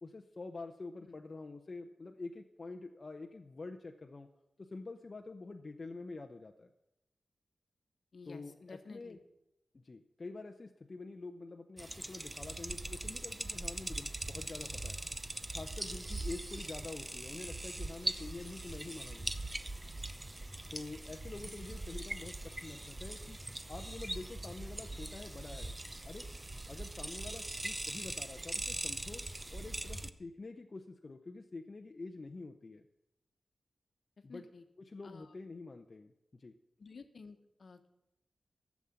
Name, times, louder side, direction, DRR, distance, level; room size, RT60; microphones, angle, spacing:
voice 1, 0.0-4.3 4.6-6.7 8.3-9.2 9.7-15.0 15.5-19.3 20.7-22.3 22.6-23.4 23.7-25.8 26.0-26.3 26.7-29.2 29.5-32.8 34.2-34.4 34.9-36.5, left 3 dB, 35° left, 4 dB, 0.7 m, -47 dB
voice 2, 8.1-9.2 34.3-34.6 35.0-35.3 36.8-37.9, left 4 dB, 50° left, 8 dB, 1.2 m, -52 dB
sound 1, 11.8-30.1, right 1 dB, 15° right, 0.6 m, -41 dB
15.0 x 7.2 x 8.8 m, 0.89 s
wide cardioid pair, 170°, 0 cm